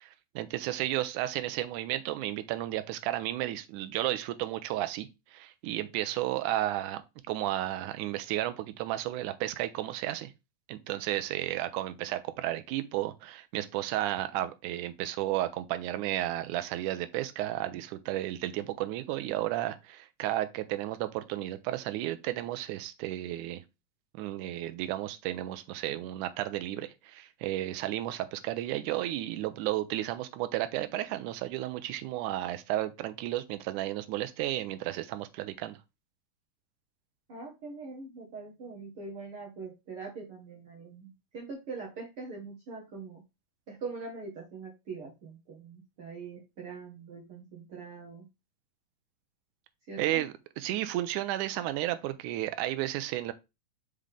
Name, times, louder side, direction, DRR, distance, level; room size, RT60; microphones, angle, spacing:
voice 1, 0.0-7.0 7.3-10.3 10.7-23.6 24.2-35.8 50.0-53.3, right 14 dB, 85° right, 1.8 m, -33 dB
voice 2, 37.3-43.2 43.7-48.3 49.9-50.3, right 4 dB, 60° right, 1.4 m, -43 dB
5.7 x 5.0 x 3.4 m
omnidirectional pair, 4.2 m